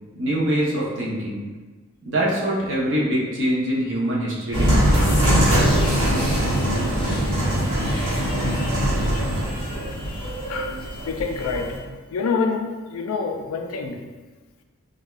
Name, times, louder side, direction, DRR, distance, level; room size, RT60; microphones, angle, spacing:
voice 1, 0.1-1.5 2.0-5.2, equal, 60° right, -5 dB, 0.8 m, -24 dB
sound 1, 4.5-11.8, equal, 85° right, 1.1 m, -22 dB
sound 2, 4.9-11.7, left 1 dB, 25° left, 0.5 m, -36 dB
voice 2, 11.1-11.8 12.1-14.1, left 4 dB, 85° left, 4 dB, 0.4 m, -27 dB
4.8 x 2.3 x 2.4 m, 1.3 s
head